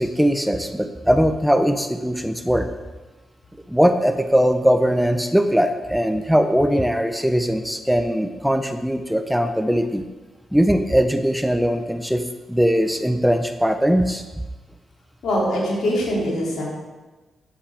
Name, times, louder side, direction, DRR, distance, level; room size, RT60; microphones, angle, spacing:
voice 1, 0.0-2.7 3.7-10.1 10.5-12.2 12.5-14.2, equal, 5° right, 8 dB, 0.7 m, -20 dB
voice 2, 15.2-16.6, equal, 70° left, -3 dB, 2.7 m, -22 dB
10.5 x 7.0 x 3.5 m, 1.2 s
hypercardioid pair, 45°, 0 cm